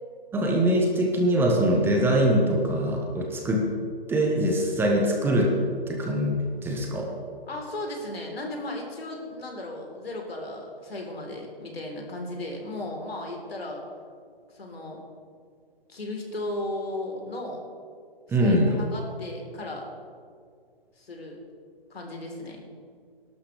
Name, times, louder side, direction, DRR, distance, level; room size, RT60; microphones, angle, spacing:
voice 1, 0.3-3.6 4.1-5.5 5.9-6.3 6.6-7.1 18.3-18.7, right 1 dB, 5° right, 0 dB, 1.0 m, -23 dB
voice 2, 7.5-13.8 14.5-15.0 15.9-17.6 18.3-19.8 21.0-21.4 21.9-22.6, left 1 dB, 85° left, 0 dB, 3.8 m, -35 dB
20.0 x 12.0 x 3.4 m, 2.1 s
hypercardioid pair, 145°, 30 cm